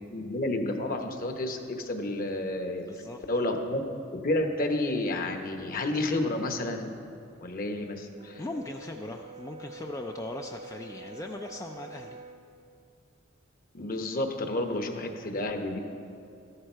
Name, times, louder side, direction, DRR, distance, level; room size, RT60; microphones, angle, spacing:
voice 1, 0.1-2.9 3.3-3.8 4.2-6.9 7.4-8.4 13.7-15.8, left 1 dB, 45° left, 5 dB, 1.0 m, -30 dB
voice 2, 2.8-3.2 8.4-12.2, left 2 dB, 15° left, 3 dB, 0.3 m, -39 dB
Brass instrument, 8.2-12.4, right 3 dB, 35° right, 0.6 m, -46 dB
13.5 x 11.0 x 4.5 m, 2.7 s
head